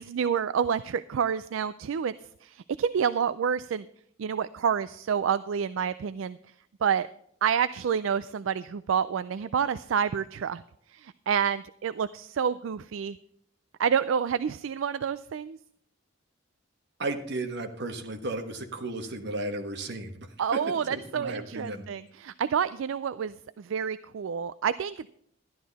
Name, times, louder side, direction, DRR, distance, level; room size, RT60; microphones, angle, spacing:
voice 1, 0.0-2.1 2.4-3.9 4.2-6.4 6.8-7.1 7.4-10.6 10.9-13.2 13.8-15.6 20.4-25.1, right 7 dB, 75° right, 15 dB, 0.4 m, -28 dB
voice 2, 17.0-20.3 20.5-20.6 20.9-21.8, right 2 dB, 60° right, 6 dB, 1.4 m, -34 dB
12.5 x 11.0 x 4.1 m, 0.67 s
head